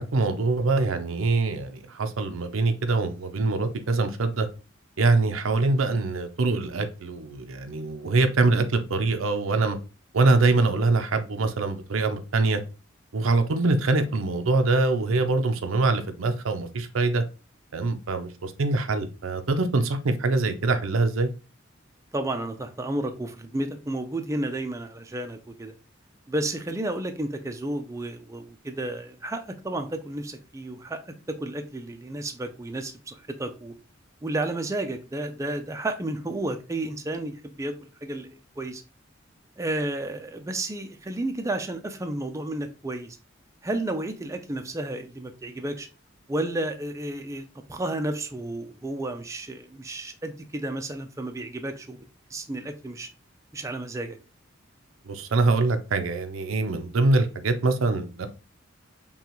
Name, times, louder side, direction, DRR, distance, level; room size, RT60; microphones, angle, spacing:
voice 1, 0.0-4.5 5.0-9.8 10.1-12.6 13.1-17.2 17.7-21.3 55.1-58.3, right 3 dB, 90° right, 7 dB, 0.6 m, -24 dB
voice 2, 22.1-25.7 26.3-33.7 34.2-38.3 38.6-38.8 39.6-43.2 43.6-45.9 46.3-52.0 52.3-53.1 53.5-54.2, right 1 dB, 15° right, 5 dB, 0.4 m, -32 dB
5.7 x 2.3 x 3.0 m, 0.31 s
head